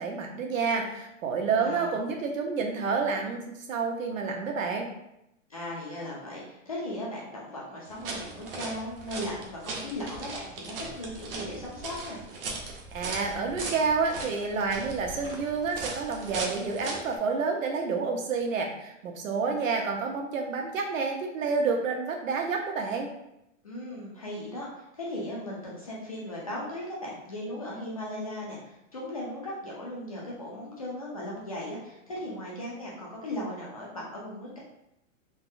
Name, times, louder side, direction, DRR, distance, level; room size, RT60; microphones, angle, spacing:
voice 1, 0.0-3.4 3.7-4.9 12.9-23.1, right 4 dB, 80° right, 2 dB, 0.8 m, -29 dB
voice 2, 1.5-2.1 5.5-12.2 23.6-34.6, left 1 dB, 30° left, -5 dB, 0.4 m, -37 dB
sound 1, 7.9-17.2, right 3 dB, 45° right, 0.6 m, -38 dB
3.5 x 2.0 x 2.6 m, 0.83 s
hypercardioid pair, 175°, 39 cm